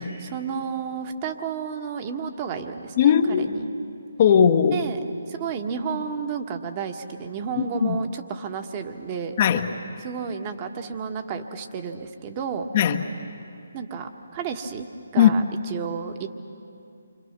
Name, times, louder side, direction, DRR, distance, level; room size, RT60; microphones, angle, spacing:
voice 1, 0.0-3.7 4.7-5.0 5.3-9.4 10.0-12.7 13.7-14.9 15.1-16.3, right 6 dB, 30° right, 5 dB, 1.6 m, -32 dB
voice 2, 3.0-3.5 4.2-4.8 7.6-8.0 9.4-9.7 12.7-13.0 15.2-15.3, left 8 dB, 40° left, 5 dB, 1.2 m, -18 dB
29.0 x 25.5 x 6.1 m, 2.6 s
figure-of-eight pair, 145°, 0 cm